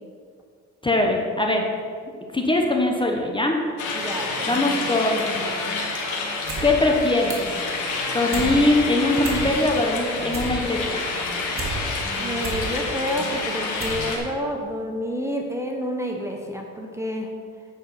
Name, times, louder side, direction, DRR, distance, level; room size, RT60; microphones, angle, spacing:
voice 1, 0.8-1.6 2.3-3.6 4.5-5.4 6.6-7.5 8.1-11.1, left 2 dB, 15° left, 1 dB, 1.0 m, -21 dB
sound 1, 3.8-14.2, left 3 dB, 75° left, 1.6 m, -28 dB
voice 2, 3.9-4.6 12.2-17.3, equal, 10° right, 1 dB, 1.0 m, -29 dB
sound 2, 6.5-6.7 6.9-7.6 7.9-8.5 8.9-9.0 9.2-9.8 10.1-11.7 12.1-12.7 13.2-13.3 13.8-14.0 14.3-14.4, right 5 dB, 45° right, 2.0 m, -32 dB
8.8 x 5.0 x 5.8 m, 2.1 s
cardioid pair, 90°, 30 cm